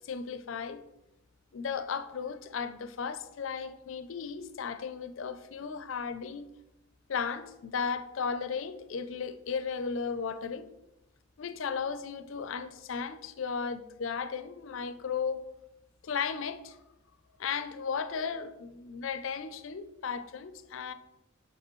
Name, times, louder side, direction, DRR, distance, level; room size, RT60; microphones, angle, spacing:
voice 1, 0.0-0.8 1.5-6.5 7.1-10.7 11.4-15.4 16.0-16.8 17.4-20.9, left 6 dB, 70° left, 0.5 m, -35 dB
6.6 x 5.5 x 3.1 m
head